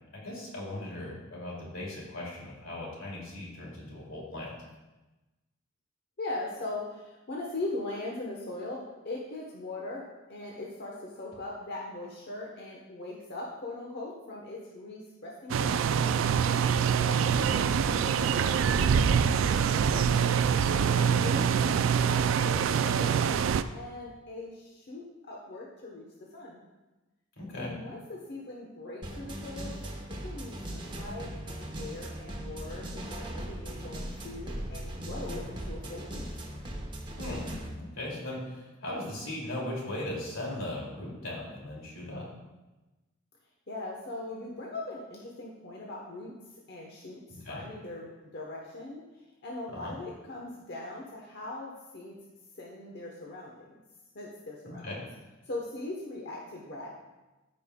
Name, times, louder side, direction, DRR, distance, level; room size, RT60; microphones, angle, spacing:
voice 1, 0.1-4.5 17.1-17.4 27.4-27.7 37.2-37.5 37.7-42.3 47.3-47.6 49.7-49.9 54.6-55.0, left 1 dB, 85° left, -4 dB, 2.5 m, -38 dB
voice 2, 6.2-10.0 10.3-15.8 16.4-21.8 22.0-23.4 23.7-26.0 26.3-26.6 27.6-29.8 30.2-36.3 43.7-46.3 46.7-52.2 52.5-53.7 54.1-55.1 55.4-56.9, left 2 dB, 55° left, -3 dB, 1.0 m, -40 dB
sound 1, 15.5-23.6, right 7 dB, 70° right, 0.3 m, -25 dB
sound 2, 29.0-37.7, right 1 dB, 25° right, 0.9 m, -39 dB
14.5 x 5.2 x 2.2 m, 1.1 s
head